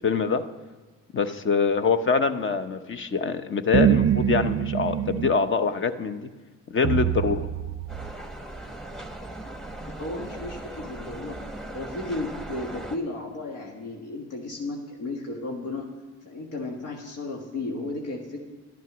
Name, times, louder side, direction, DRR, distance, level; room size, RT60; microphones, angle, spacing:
voice 1, 0.0-0.4 1.1-6.3 6.7-7.5, left 5 dB, 40° left, 10 dB, 0.9 m, -24 dB
sound 1, 3.7-5.4 6.8-8.1, right 10 dB, 45° right, 0.5 m, -24 dB
sound 2, 7.9-13.0, right 1 dB, ahead, 1.0 m, -38 dB
voice 2, 9.9-11.4 11.7-15.9 16.2-18.4, left 2 dB, 90° left, 0 dB, 1.6 m, -34 dB
12.0 x 11.0 x 6.1 m, 1.3 s
cardioid pair, 90°, 30 cm